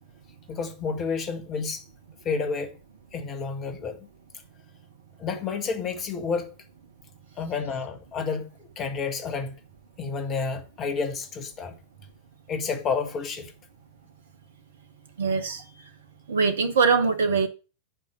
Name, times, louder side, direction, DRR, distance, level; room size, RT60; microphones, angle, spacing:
voice 1, 0.5-1.9 2.2-2.7 3.1-4.1 5.2-6.5 7.4-9.6 10.0-11.8 12.5-13.5, left 5 dB, 30° left, 1.9 m, -30 dB
voice 2, 15.2-15.6 16.3-17.5, right 5 dB, 65° right, 1.1 m, -22 dB
8.9 x 5.0 x 7.6 m
figure-of-eight pair, 90°, 0 cm